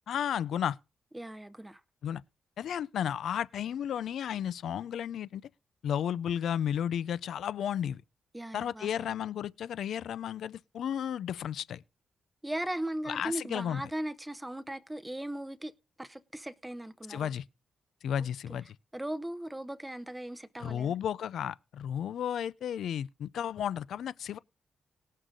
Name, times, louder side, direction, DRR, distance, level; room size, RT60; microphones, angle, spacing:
voice 1, 0.1-0.8 2.0-2.2 2.6-5.4 5.8-8.0 8.5-11.8 13.1-13.8 17.1-17.4 18.0-18.8 20.6-24.4, left 9 dB, 75° left, 0.5 m, -33 dB
voice 2, 1.1-1.8 8.3-9.1 12.4-15.7 16.0-17.3 18.2-18.6 18.9-20.9, right 1 dB, 5° right, 0.6 m, -38 dB
19.5 x 6.5 x 3.7 m
wide cardioid pair, 165°, 0 cm